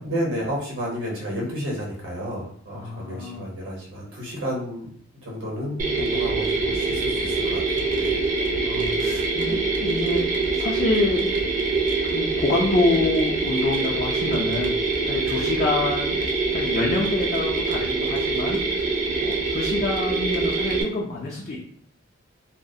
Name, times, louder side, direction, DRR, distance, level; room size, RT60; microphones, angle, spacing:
voice 1, 0.0-4.9 5.2-8.2, equal, 80° right, -4 dB, 0.9 m, -31 dB
voice 2, 2.7-3.5 8.6-10.2 10.5-11.3 12.0-14.7 15.0-16.2 16.5-21.6, left 2 dB, 40° left, -4 dB, 0.4 m, -27 dB
Mechanisms, 5.8-20.8, right 3 dB, 40° right, 0.4 m, -24 dB
2.3 x 2.1 x 2.6 m, 0.63 s
head